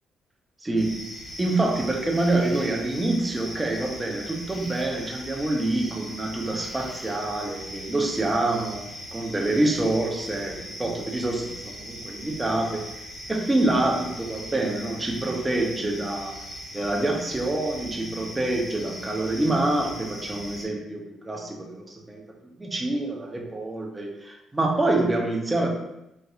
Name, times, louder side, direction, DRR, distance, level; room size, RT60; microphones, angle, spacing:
voice 1, 0.6-1.0 1.4-8.8 9.1-12.8 13.3-16.4 16.7-22.2 22.6-25.7, right 2 dB, 20° right, 0 dB, 0.7 m, -26 dB
sound 1, 0.8-20.7, equal, 25° left, 1.1 m, -40 dB
4.2 x 2.5 x 2.4 m, 0.88 s
cardioid pair, 90°, 0 cm